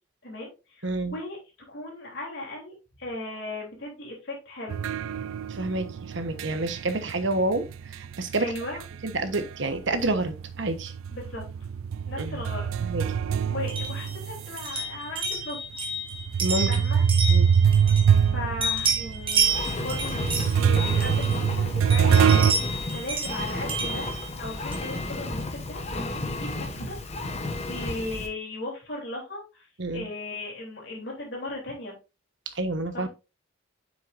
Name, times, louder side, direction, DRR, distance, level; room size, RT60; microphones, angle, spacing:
voice 1, 0.2-1.4 1.7-4.8 8.4-8.8 11.1-11.4 12.1-12.7 13.4-15.6 16.7-17.0 18.2-29.7 29.9-32.0 32.9-33.1, left 1 dB, 60° left, 3.4 m, -37 dB
voice 2, 0.8-1.1 5.5-8.4 9.0-10.9 12.2-12.4 12.8-13.0 16.4-16.8 17.3-17.5 29.8-30.1 32.5-33.1, right 2 dB, 65° right, 1.1 m, -28 dB
sound 1, 4.7-9.7 10.0-14.7 15.3-15.4 16.1-22.5, right 7 dB, 85° right, 0.3 m, -24 dB
sound 2, 13.7-18.3 18.6-21.5 21.9-25.0, right 3 dB, 25° right, 1.6 m, -30 dB
Engine, 19.4-28.3, left 2 dB, 30° left, 1.1 m, -33 dB
7.6 x 6.5 x 2.6 m
head